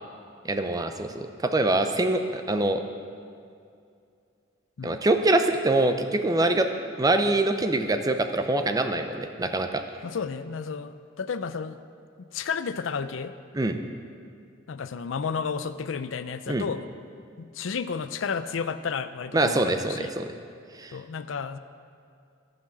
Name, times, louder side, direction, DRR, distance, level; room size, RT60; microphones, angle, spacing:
voice 1, 0.4-2.8 4.8-6.7 7.0-9.7 13.5-13.8 16.5-16.7 19.3-20.3 20.8-20.9, right 2 dB, 20° right, 7 dB, 0.6 m, -24 dB
voice 2, 10.0-11.8 12.2-13.3 14.7-16.9 17.4-20.1 20.9-21.6, left 5 dB, 85° left, 12 dB, 0.5 m, -32 dB
12.5 x 6.0 x 7.4 m, 2.4 s
head